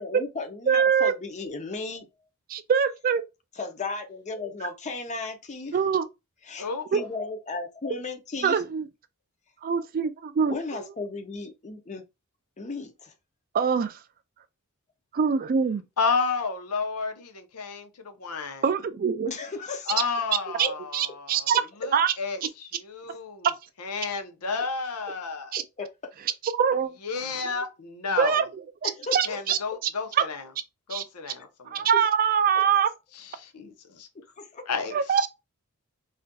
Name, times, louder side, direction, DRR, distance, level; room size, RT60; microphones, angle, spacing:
voice 1, 0.0-2.1 3.5-5.8 6.5-6.7 6.9-8.6 10.4-12.0 12.6-13.1 19.3-20.0 20.6-20.8 25.6-26.1 28.8-29.4 31.4-31.5 34.1-34.6, left 3 dB, 30° left, 0.5 m, -35 dB
voice 2, 0.7-1.1 2.5-3.2 5.7-6.1 6.9-7.0 8.4-8.9 9.6-10.5 13.5-14.0 15.1-15.8 18.6-19.3 20.6-20.7 20.9-21.6 21.9-22.1 25.5-25.6 26.4-26.9 28.2-28.5 28.8-29.6 30.1-30.2 30.9-31.0 31.7-32.9 34.9-35.3, right 7 dB, 40° right, 0.3 m, -23 dB
voice 3, 16.0-17.9 18.2-18.6 19.9-23.5 23.8-25.5 27.0-28.4 29.3-30.4 30.9-31.9 33.1-34.1 34.7-35.2, left 4 dB, 85° left, 0.7 m, -31 dB
3.9 x 2.5 x 2.2 m
head